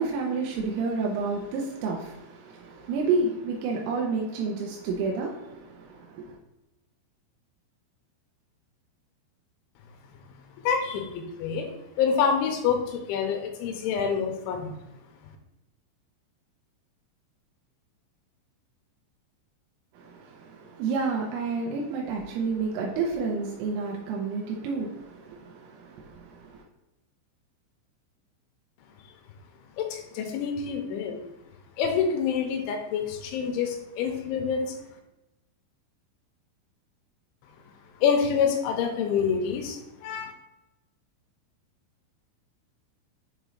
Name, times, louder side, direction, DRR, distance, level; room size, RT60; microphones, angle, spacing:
voice 1, 0.0-6.4 19.9-26.6, right 4 dB, 90° right, 3.4 m, -30 dB
voice 2, 10.5-11.7 12.0-14.8 29.8-31.2 31.8-34.8 37.9-40.3, left 6 dB, 80° left, 2.9 m, -27 dB
8.0 x 3.2 x 3.8 m
omnidirectional pair, 5.7 m